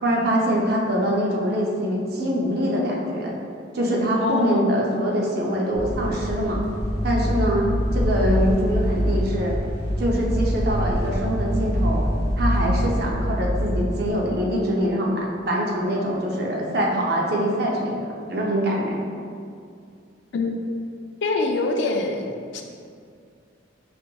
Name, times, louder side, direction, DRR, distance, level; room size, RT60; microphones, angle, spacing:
voice 1, 0.0-3.3 3.7-6.6 7.0-7.7 7.9-9.5 10.0-12.0 12.4-19.0, equal, 55° right, -2 dB, 0.5 m, -24 dB
voice 2, 4.2-4.7 20.3-20.5 21.2-22.6, left 3 dB, 65° left, 3 dB, 0.3 m, -24 dB
sound 1, 5.8-14.1, equal, 25° left, 1.0 m, -24 dB
5.0 x 2.8 x 2.2 m, 2.3 s
head